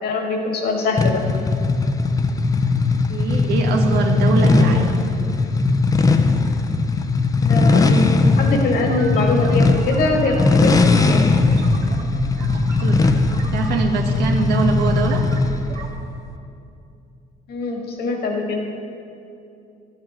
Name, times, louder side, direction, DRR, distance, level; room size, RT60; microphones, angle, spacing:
voice 1, 0.0-1.2 7.4-8.1 8.4-10.8 11.0-11.2 17.5-18.6, left 2 dB, 70° left, 1 dB, 1.7 m, -22 dB
sound 1, 1.0-15.7, left 3 dB, 20° left, 0.6 m, -18 dB
voice 2, 3.1-5.0 12.4-12.5 12.8-13.0 13.5-15.2, right 4 dB, 75° right, 2 dB, 1.1 m, -22 dB
sound 2, 8.7-15.9, right 3 dB, 50° right, 1.9 m, -32 dB
11.5 x 7.9 x 4.3 m, 2.6 s
cardioid pair, 110°, 17 cm